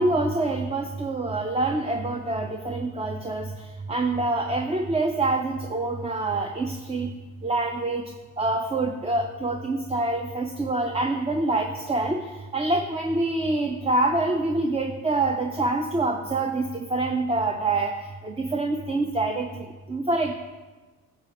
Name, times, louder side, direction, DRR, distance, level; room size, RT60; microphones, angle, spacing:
voice 1, 0.0-3.5 3.9-7.1 7.4-8.0 8.4-12.3 12.5-17.9 18.2-20.3, right 2 dB, 20° right, 3 dB, 0.6 m, -26 dB
12.0 x 7.0 x 3.0 m, 1.3 s
cardioid pair, 90°, 30 cm